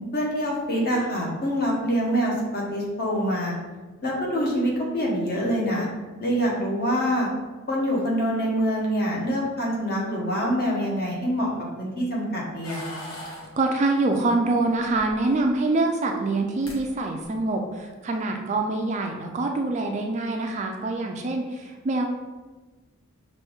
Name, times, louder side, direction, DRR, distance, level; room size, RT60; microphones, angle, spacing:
voice 1, 0.1-3.5 4.0-5.8 6.2-7.3 7.7-11.5 11.8-13.0, equal, 45° left, -3 dB, 1.1 m, -25 dB
sound 1, 12.6-13.5 14.8-15.5 16.3-16.4 16.6-16.8 17.2-17.6, left 1 dB, 65° left, 1.2 m, -39 dB
voice 2, 13.6-22.1, right 2 dB, 30° right, 3 dB, 0.3 m, -25 dB
5.4 x 2.6 x 3.5 m, 1.3 s
head